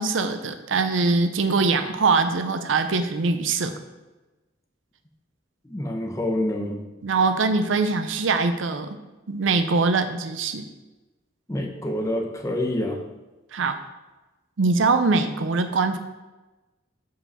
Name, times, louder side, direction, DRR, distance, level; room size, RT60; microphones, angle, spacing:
voice 1, 0.0-3.8 7.0-9.0 9.3-10.7 13.5-13.8 14.6-16.0, right 4 dB, 80° right, 8 dB, 0.5 m, -22 dB
voice 2, 5.6-6.8 11.5-13.0, left 1 dB, 15° left, 3 dB, 0.7 m, -27 dB
5.6 x 4.9 x 5.5 m, 1.1 s
head